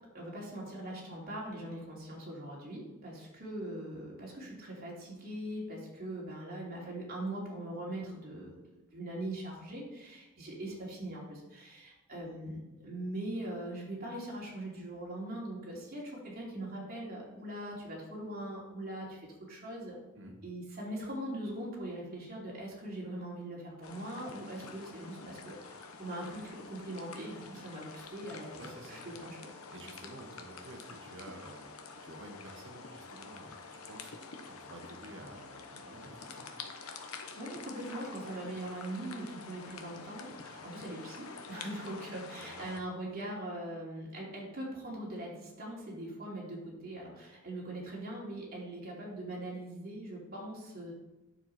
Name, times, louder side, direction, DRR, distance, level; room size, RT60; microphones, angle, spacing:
voice 1, 0.1-8.5 8.9-19.2 19.5-19.9 20.4-29.4 37.1-50.9, right 1 dB, 45° right, -4 dB, 2.9 m, -41 dB
sound 1, 23.8-42.8, left 4 dB, 85° left, 1.0 m, -48 dB
voice 2, 28.6-29.0 29.7-36.5 42.4-42.7, right 1 dB, 60° right, 2 dB, 1.6 m, -51 dB
9.5 x 7.1 x 4.3 m, 1.0 s
head